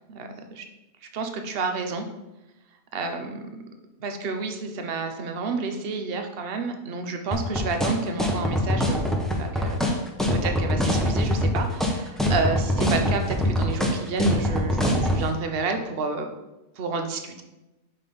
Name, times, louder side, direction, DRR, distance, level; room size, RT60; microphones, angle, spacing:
voice 1, 0.1-0.6 1.1-2.0 2.9-3.6 4.0-9.0 9.4-9.8 10.3-16.3 16.8-17.4, right 4 dB, 50° right, 6 dB, 0.7 m, -30 dB
sound 1, 7.3-15.2, equal, ahead, 0.4 m, -23 dB
5.5 x 4.2 x 5.2 m, 0.99 s
omnidirectional pair, 1.6 m